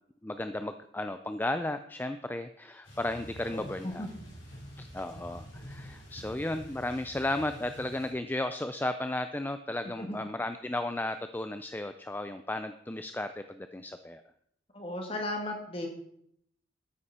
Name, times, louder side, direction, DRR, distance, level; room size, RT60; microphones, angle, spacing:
voice 1, 0.2-4.1 4.8-14.2, left 1 dB, 10° left, 9 dB, 0.4 m, -34 dB
sound 1, 2.8-8.1, equal, 80° left, 5.8 m, -47 dB
voice 2, 3.5-4.1 10.0-10.2 14.7-15.9, left 1 dB, 30° left, 2 dB, 2.2 m, -36 dB
12.5 x 9.9 x 4.3 m, 0.71 s
head